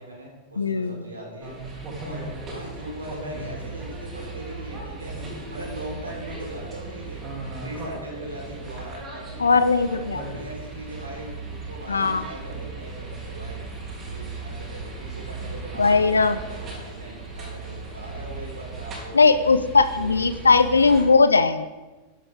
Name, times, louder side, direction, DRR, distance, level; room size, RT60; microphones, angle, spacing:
voice 1, 0.0-1.6 2.0-5.1 5.5-7.2 7.6-9.5 9.9-13.6 14.1-19.3 19.9-20.3, right 1 dB, 75° right, -2 dB, 4.0 m, -40 dB
voice 2, 0.6-1.0 9.4-10.2 11.9-12.2 15.8-16.4 19.1-21.7, left 4 dB, 75° left, 13 dB, 0.5 m, -19 dB
sound 1, 1.4-21.0, right 3 dB, 25° right, 3.3 m, -37 dB
13.0 x 11.5 x 3.7 m, 1.2 s
figure-of-eight pair, 90°, 0 cm